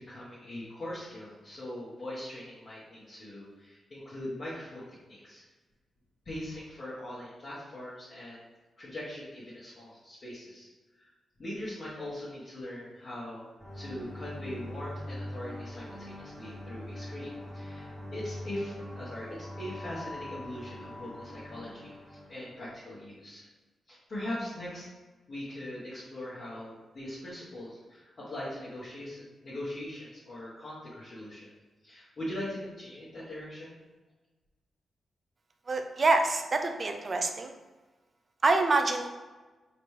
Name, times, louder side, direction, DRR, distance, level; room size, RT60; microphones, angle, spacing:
voice 1, 0.0-5.4 6.2-8.4 8.8-10.7 11.0-11.1 11.4-13.5 13.7-23.5 23.9-24.9 25.3-31.5 31.8-33.8, left 1 dB, 45° left, -10 dB, 1.3 m, -41 dB
sound 1, 13.6-22.6, left 1 dB, 5° right, 1.1 m, -42 dB
voice 2, 35.7-37.5 38.4-39.2, right 3 dB, 40° right, 5 dB, 0.4 m, -26 dB
4.2 x 3.0 x 3.2 m, 1.2 s
cardioid pair, 100°, 0 cm